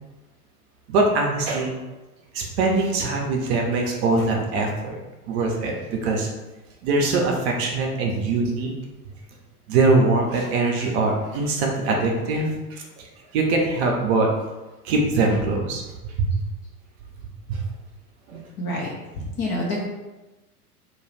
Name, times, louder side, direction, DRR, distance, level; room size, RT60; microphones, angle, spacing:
voice 1, 0.9-1.8 2.3-5.0 5.3-6.3 6.8-8.7 9.7-12.8 13.3-14.3 14.8-15.8 16.2-16.4 17.5-17.6 18.3-18.4, right 3 dB, 45° right, 0 dB, 0.6 m, -22 dB
voice 2, 18.6-19.8, left 1 dB, 25° left, -3 dB, 0.4 m, -28 dB
2.4 x 2.3 x 3.3 m, 1.1 s
figure-of-eight pair, 90°, 46 cm